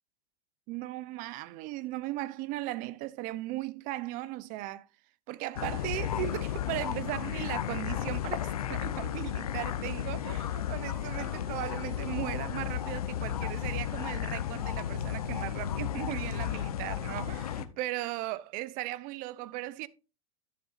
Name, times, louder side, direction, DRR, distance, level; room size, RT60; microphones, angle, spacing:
voice 1, 0.7-4.9 5.3-19.9, right 17 dB, 50° right, 0.6 m, -37 dB
sound 1, 5.6-17.7, left 10 dB, 90° left, 0.7 m, -33 dB
11.0 x 7.4 x 2.5 m
hypercardioid pair, 105°, 19 cm